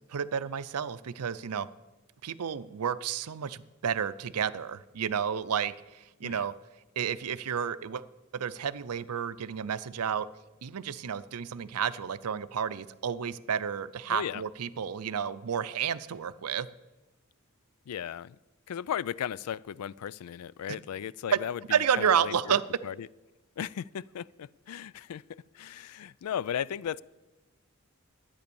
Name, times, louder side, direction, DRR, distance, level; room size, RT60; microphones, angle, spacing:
voice 1, 0.1-1.7 2.2-6.5 7.0-8.0 8.3-10.3 10.6-16.7 21.3-21.4 21.7-22.6, right 7 dB, 90° right, 15 dB, 0.5 m, -31 dB
voice 2, 14.1-14.4 17.9-18.4 18.7-22.6 22.8-23.1 23.6-27.0, left 9 dB, 85° left, 22 dB, 0.3 m, -36 dB
12.0 x 8.9 x 7.0 m, 1.1 s
head